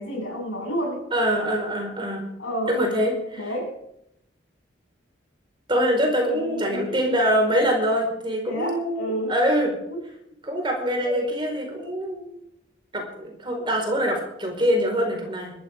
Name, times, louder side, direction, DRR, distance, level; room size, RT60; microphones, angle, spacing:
voice 1, 0.0-1.1 2.4-2.9 3.4-3.8 6.3-7.1 8.4-9.4 9.9-10.0 10.9-11.2, equal, 90° left, 0 dB, 7.2 m, -30 dB
voice 2, 1.1-2.3 2.7-3.4 5.7-9.7 10.4-12.3 12.9-15.5, equal, 25° right, 2 dB, 4.8 m, -24 dB
21.0 x 13.5 x 3.7 m, 0.79 s
head